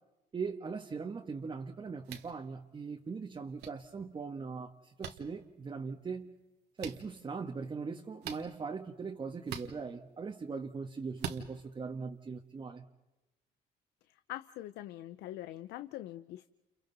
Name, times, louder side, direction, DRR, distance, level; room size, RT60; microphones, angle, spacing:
voice 1, 0.3-6.3 6.8-12.9, right 5 dB, 30° right, 2 dB, 1.5 m, -40 dB
sound 1, 2.0-2.3 3.6-3.7 5.0-5.1 6.8-7.0 8.2-8.4 9.4-9.7 11.2-11.4, right 8 dB, 80° right, 2.1 m, -40 dB
voice 2, 14.1-16.5, left 14 dB, 85° left, 11 dB, 0.7 m, -44 dB
30.0 x 29.5 x 4.1 m, 1.1 s
cardioid pair, 110°, 17 cm